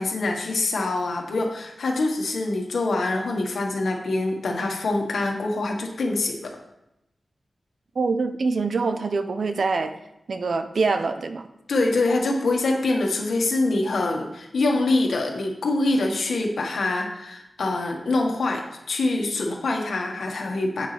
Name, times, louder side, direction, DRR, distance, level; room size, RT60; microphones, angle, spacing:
voice 1, 0.0-6.5 11.7-18.6 18.9-20.9, left 2 dB, 85° left, 1 dB, 1.6 m, -25 dB
voice 2, 7.9-9.9 10.3-11.5, right 4 dB, 65° right, 8 dB, 0.7 m, -24 dB
10.0 x 8.7 x 3.4 m, 0.88 s
wide cardioid pair, 130°, 0 cm